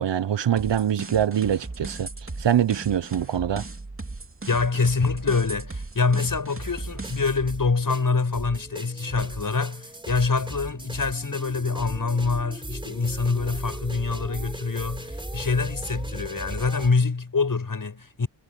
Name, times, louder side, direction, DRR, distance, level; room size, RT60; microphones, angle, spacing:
voice 1, 0.0-2.1 2.4-3.6, right 9 dB, 75° right, 0.9 m, -24 dB
sound 1, 0.6-7.4, right 3 dB, 30° right, 3.1 m, -37 dB
voice 2, 4.5-18.3, left 4 dB, 50° left, 6.5 m, -25 dB
sound 2, 6.0-16.9, right 1 dB, 10° right, 3.7 m, -37 dB
wide cardioid pair, 120°, 43 cm